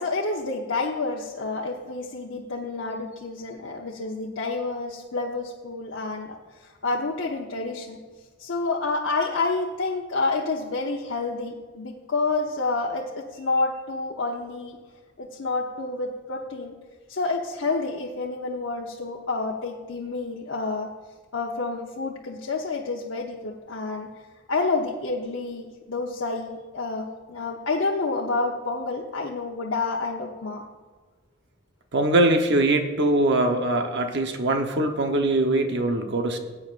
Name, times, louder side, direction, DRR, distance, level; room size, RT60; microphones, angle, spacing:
voice 1, 0.0-6.4 6.6-8.0 8.4-14.8 15.2-16.7 17.1-20.9 21.3-24.1 24.5-30.6, left 3 dB, 85° left, -2 dB, 0.9 m, -29 dB
voice 2, 31.9-36.4, right 2 dB, 65° right, 4 dB, 1.0 m, -22 dB
19.0 x 8.6 x 2.5 m, 1.4 s
head